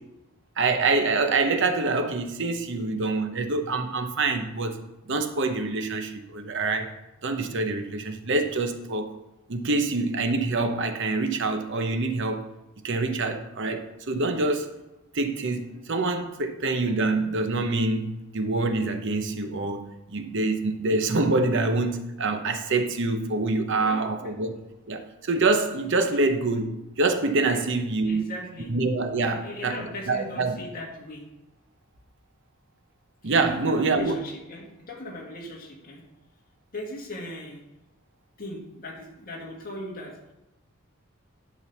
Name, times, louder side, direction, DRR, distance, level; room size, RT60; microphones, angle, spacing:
voice 1, 0.6-4.8 5.1-6.9 7.2-9.1 9.5-12.4 12.8-14.7 15.1-19.8 20.1-24.6 24.9-28.2 28.7-29.8 30.1-30.5 33.2-34.2, right 3 dB, 60° right, 7 dB, 0.9 m, -25 dB
voice 2, 23.8-24.3 27.5-27.6 28.0-28.7 29.3-31.2 33.5-36.0 36.7-37.6 38.4-40.2, left 1 dB, 45° left, -1 dB, 2.0 m, -38 dB
11.0 x 3.9 x 7.0 m, 0.96 s
head